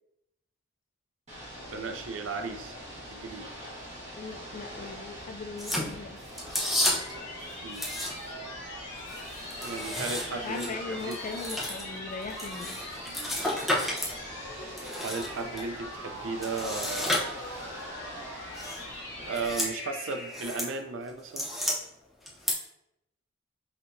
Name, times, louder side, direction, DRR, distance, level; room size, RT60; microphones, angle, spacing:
Ocean / Boat Water vehicle, 1.3-19.7, equal, 35° right, 1.4 m, -44 dB
voice 1, 1.7-2.8 3.1-3.5 7.6-7.9 9.6-11.2 15.0-17.5 18.4-18.6 19.3-21.5, right 3 dB, 75° right, 6 dB, 0.5 m, -35 dB
voice 2, 4.1-6.2 10.4-12.8, left 4 dB, 40° left, 7 dB, 0.4 m, -39 dB
sound 1, 5.6-7.2 7.7-8.4 8.8-14.2 14.5-15.6 16.4-17.7 18.5-18.8 19.2-19.7 20.1-20.7 21.1-21.7 22.3-22.5, left 1 dB, ahead, 0.9 m, -32 dB
sound 2, 6.2-20.9, left 1 dB, 60° left, 1.3 m, -42 dB
5.8 x 2.8 x 2.6 m, 0.81 s
head